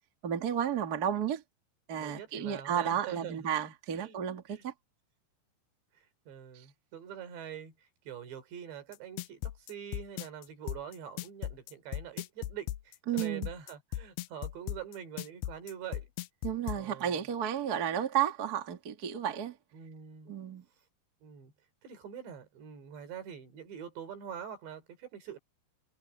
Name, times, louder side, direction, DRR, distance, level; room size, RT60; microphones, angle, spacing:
voice 1, 0.2-1.4 1.9-4.7 13.1-13.5 16.4-19.6 20.3-20.6, right 9 dB, 35° right, 1.5 m, -32 dB
voice 2, 2.0-3.5 4.0-4.2 4.5-4.6 6.3-7.7 8.1-16.1 16.7-17.3 19.7-20.3 21.2-21.5 21.8-25.4, right 9 dB, 85° right, 6.1 m, -44 dB
sound 1, 8.9-16.8, left 14 dB, 85° left, 2.7 m, -37 dB
omnidirectional pair, 4.9 m